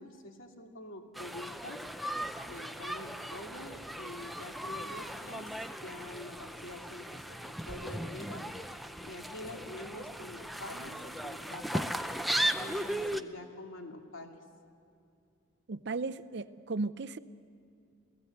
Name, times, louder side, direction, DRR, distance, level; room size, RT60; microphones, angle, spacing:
voice 1, 0.0-1.8 2.5-5.5 5.8-8.4 9.0-11.9 12.5-14.4, left 1 dB, 85° left, 3 dB, 2.4 m, -46 dB
sound 1, 1.1-13.2, equal, ahead, 0.5 m, -37 dB
voice 2, 15.7-17.2, right 3 dB, 55° right, 13 dB, 0.6 m, -35 dB
29.0 x 17.0 x 8.1 m, 2.5 s
head